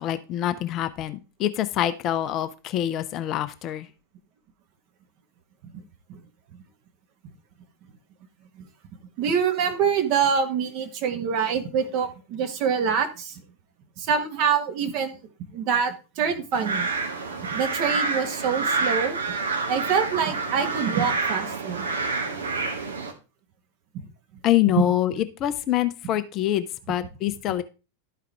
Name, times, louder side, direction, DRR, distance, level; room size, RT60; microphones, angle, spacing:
voice 1, 0.0-3.9 24.4-27.6, left 12 dB, 35° left, 11 dB, 0.5 m, -25 dB
voice 2, 9.2-13.4 14.0-15.2 15.5-16.9 17.4-19.2 19.7-21.9 24.8-24.9, right 6 dB, 40° right, 6 dB, 1.3 m, -25 dB
sound 1, 16.5-23.1, right 4 dB, 70° right, 1.1 m, -28 dB
12.0 x 4.7 x 3.4 m, 0.31 s
figure-of-eight pair, 90°, 0 cm